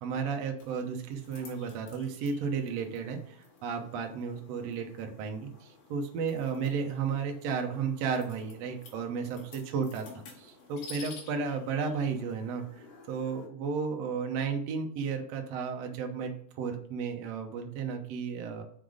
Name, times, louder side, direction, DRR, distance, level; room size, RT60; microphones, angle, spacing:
voice 1, 0.0-3.4 3.6-10.1 10.4-12.6 13.1-18.6, right 5 dB, 85° right, 3 dB, 1.4 m, -33 dB
sound 1, 0.6-13.5, left 4 dB, 85° left, 3.5 m, -53 dB
6.8 x 3.9 x 4.9 m, 0.65 s
omnidirectional pair, 4.2 m